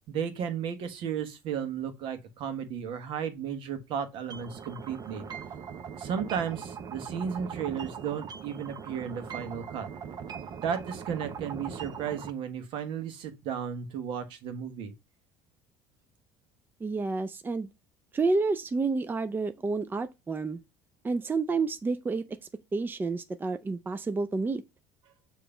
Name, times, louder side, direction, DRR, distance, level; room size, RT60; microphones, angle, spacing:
voice 1, 0.1-5.2 6.0-9.9 10.6-14.9, right 7 dB, 65° right, 1.4 m, -34 dB
sound 1, 4.3-12.3, right 7 dB, 45° right, 1.0 m, -40 dB
voice 2, 16.8-17.7 18.1-20.6 21.0-22.3 22.7-24.6, right 3 dB, 20° right, 0.6 m, -29 dB
6.8 x 3.1 x 5.0 m
hypercardioid pair, 75°, 9 cm